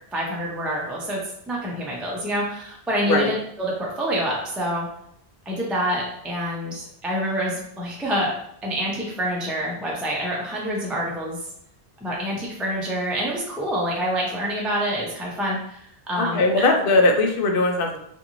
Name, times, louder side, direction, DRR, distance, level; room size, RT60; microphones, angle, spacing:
voice 1, 0.1-1.2 1.5-4.9 5.5-8.3 8.6-11.4 12.0-16.4, equal, ahead, -4 dB, 0.4 m, -27 dB
voice 2, 16.2-18.0, left 2 dB, 65° left, 2 dB, 0.7 m, -20 dB
2.5 x 2.5 x 2.9 m, 0.73 s
omnidirectional pair, 1.1 m